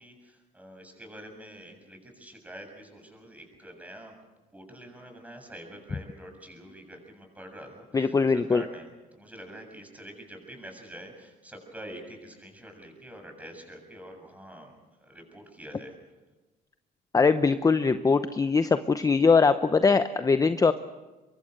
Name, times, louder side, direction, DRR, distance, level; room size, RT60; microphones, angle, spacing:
voice 1, 0.0-4.2 4.5-16.0, right 1 dB, 10° right, 4 dB, 7.2 m, -46 dB
voice 2, 7.9-8.6 17.1-20.7, left 4 dB, 20° left, 11 dB, 0.8 m, -22 dB
24.5 x 23.0 x 6.7 m, 1.2 s
cardioid pair, 110°, 17 cm